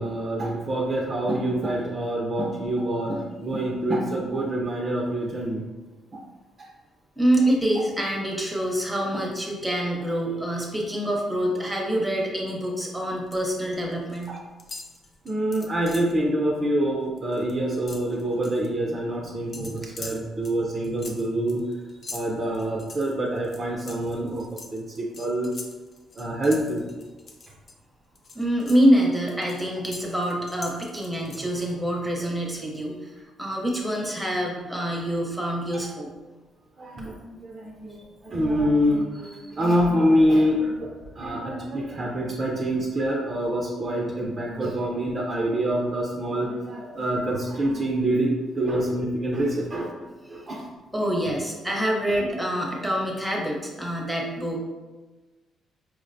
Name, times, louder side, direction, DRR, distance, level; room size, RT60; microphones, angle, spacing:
voice 1, 0.0-5.6 6.1-6.2 6.6-6.7 9.1-9.2 14.3-14.4 15.2-21.7 22.1-25.5 26.1-26.8 35.7-35.8 36.8-50.7 52.1-52.3, right 1 dB, 40° right, -2 dB, 0.5 m, -26 dB
voice 2, 7.2-14.3 28.3-36.1 39.4-39.5 46.9-47.1 50.4-50.5 50.9-54.6, right 1 dB, 5° right, -2 dB, 0.7 m, -26 dB
sound 1, 12.9-13.5 13.8-14.3 14.6-16.2 16.6-16.8 17.1-18.7 19.5-27.7 28.1-31.7, left 3 dB, 45° left, 0.5 m, -43 dB
4.4 x 2.1 x 2.6 m, 1.2 s
cardioid pair, 90°, 0 cm